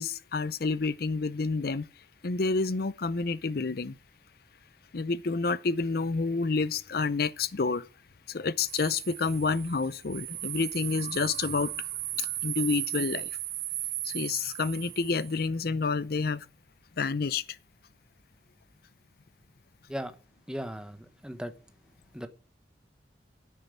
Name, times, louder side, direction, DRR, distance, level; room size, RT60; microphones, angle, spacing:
voice 1, 0.0-1.9 2.2-4.0 4.9-7.9 8.3-11.9 12.2-13.3 14.0-16.5 17.0-17.4, left 4 dB, 60° left, 0.6 m, -29 dB
sound 1, 8.7-15.5, right 15 dB, 70° right, 1.2 m, -36 dB
voice 2, 20.5-21.5 22.1-22.3, equal, 5° right, 1.1 m, -37 dB
10.0 x 8.6 x 9.6 m
head